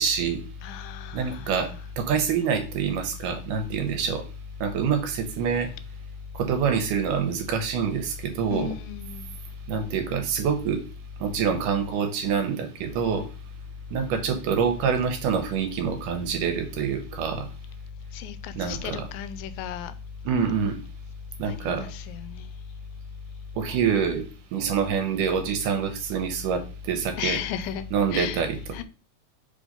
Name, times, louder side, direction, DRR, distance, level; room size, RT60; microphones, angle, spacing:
voice 1, 0.0-0.4 1.1-4.2 4.6-5.7 6.3-8.7 9.7-10.8 11.2-13.3 13.9-17.5 18.6-19.0 20.3-20.8 21.4-21.8 23.6-24.3 24.5-27.4 27.9-28.5, right 7 dB, 75° right, 2.1 m, -26 dB
voice 2, 0.6-1.8 8.5-9.3 18.1-19.9 21.5-22.5 27.2-27.9 28.1-28.8, left 8 dB, 90° left, 2.3 m, -34 dB
5.1 x 3.8 x 5.1 m
omnidirectional pair, 4.1 m